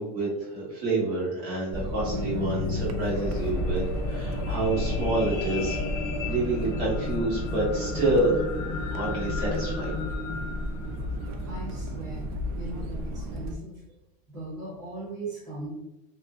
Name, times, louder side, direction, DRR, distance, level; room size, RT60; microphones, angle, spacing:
voice 1, 0.0-5.8 6.2-8.4 8.9-9.9, right 2 dB, 50° right, -8 dB, 1.3 m, -28 dB
sound 1, 1.7-13.6, equal, 65° right, 0.4 m, -34 dB
sound 2, 1.8-12.1 12.7-12.8, left 4 dB, 90° left, 0.6 m, -34 dB
sound 3, 3.1-8.3, left 1 dB, 10° left, 0.4 m, -36 dB
voice 2, 11.4-14.0 14.3-15.7, right 2 dB, 20° right, -10 dB, 1.0 m, -39 dB
2.5 x 2.0 x 2.5 m, 0.93 s
supercardioid pair, 155°, 21 cm